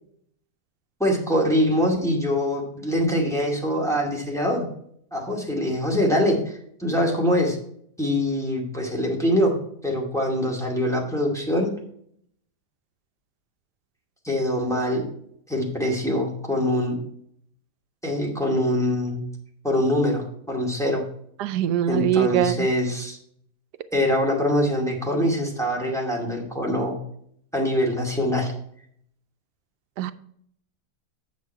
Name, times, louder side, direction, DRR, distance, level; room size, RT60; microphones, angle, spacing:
voice 1, 1.0-4.7 5.1-7.6 8.0-9.5 9.8-11.7 14.2-15.0 15.5-16.9 18.0-19.3 19.6-21.0 21.9-23.2 23.9-27.0 27.5-28.5, left 1 dB, ahead, -2 dB, 2.2 m, -23 dB
voice 2, 21.4-22.7 30.0-30.1, right 10 dB, 85° right, 12 dB, 1.2 m, -22 dB
8.6 x 6.8 x 4.6 m, 0.66 s
omnidirectional pair, 1.7 m